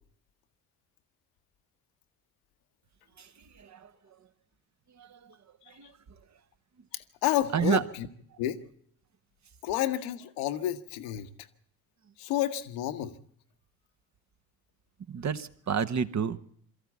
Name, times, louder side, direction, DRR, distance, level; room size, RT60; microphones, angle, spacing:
voice 1, 3.2-4.2 4.9-5.4 5.7-5.9 7.5-7.8 15.1-16.4, right 7 dB, 35° right, 1.3 m, -31 dB
voice 2, 6.9-8.1 8.4-8.6 9.6-11.3 12.2-13.2, left 12 dB, 70° left, 1.3 m, -30 dB
22.5 x 14.0 x 8.3 m
figure-of-eight pair, 45°, 46 cm